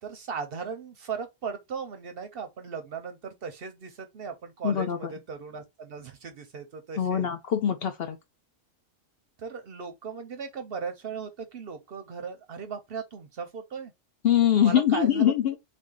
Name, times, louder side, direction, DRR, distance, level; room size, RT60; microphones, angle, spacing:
voice 1, 0.0-7.3 9.4-13.9 14.6-15.6, right 6 dB, 55° right, 0.7 m, -37 dB
voice 2, 4.6-5.1 7.0-8.2 14.2-15.6, left 10 dB, 65° left, 0.7 m, -23 dB
3.5 x 2.6 x 3.6 m
omnidirectional pair, 1.3 m